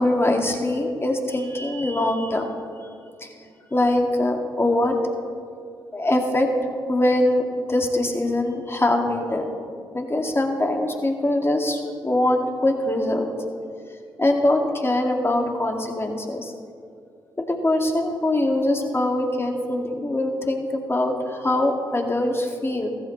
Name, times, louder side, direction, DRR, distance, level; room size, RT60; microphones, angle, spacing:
voice 1, 0.0-2.5 3.2-3.4 3.7-5.1 5.9-6.5 6.9-7.4 7.7-9.5 9.9-13.3 14.2-16.5 17.5-22.9, left 1 dB, 25° left, 2 dB, 2.1 m, -23 dB
14.5 x 14.5 x 3.1 m, 2.4 s
hypercardioid pair, 45°, 10 cm